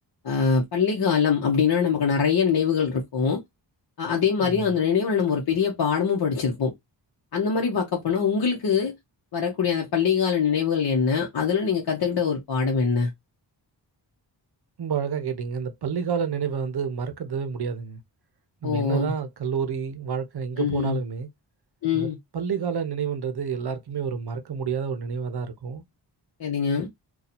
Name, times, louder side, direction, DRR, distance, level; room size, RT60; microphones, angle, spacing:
voice 1, 0.2-3.4 4.0-6.7 7.3-8.9 9.3-13.1 18.6-19.1 20.6-21.0 21.8-22.2 26.4-26.9, left 6 dB, 55° left, 0.8 m, -23 dB
voice 2, 14.8-18.0 18.6-21.3 21.9-22.1 22.3-25.8, right 6 dB, 60° right, 0.7 m, -29 dB
2.7 x 2.4 x 4.1 m
wide cardioid pair, 175°, 44 cm